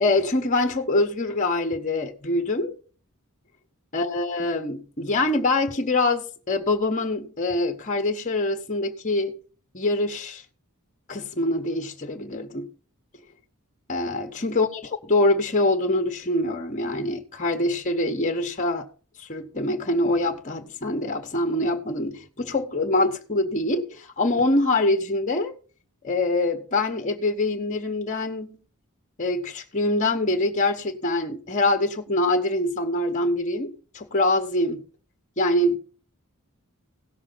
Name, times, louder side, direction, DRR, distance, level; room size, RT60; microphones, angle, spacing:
voice 1, 0.0-2.7 3.9-9.3 9.7-10.4 11.1-12.7 13.9-14.7 15.1-18.9 19.2-25.5 26.0-28.6 29.2-34.8 35.4-35.8, left 2 dB, 35° left, 1.2 m, -24 dB
17.0 x 6.5 x 4.0 m
head